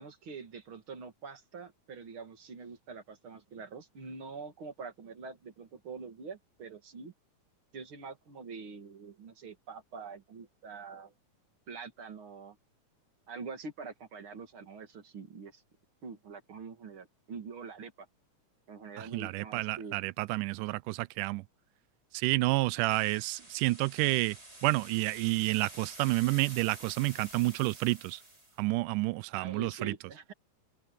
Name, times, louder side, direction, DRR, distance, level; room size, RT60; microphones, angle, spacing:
voice 1, 0.0-7.1 7.7-11.1 11.7-12.6 13.3-15.6 16.0-18.1 18.7-20.0 29.4-30.3, right 5 dB, 40° right, 2.9 m, -45 dB
voice 2, 19.0-21.4 22.1-24.4 24.6-28.2 28.6-29.9, right 21 dB, 85° right, 2.1 m, -30 dB
sound 1, 22.9-28.6, right 1 dB, 20° right, 6.4 m, -49 dB
open air
omnidirectional pair, 3.7 m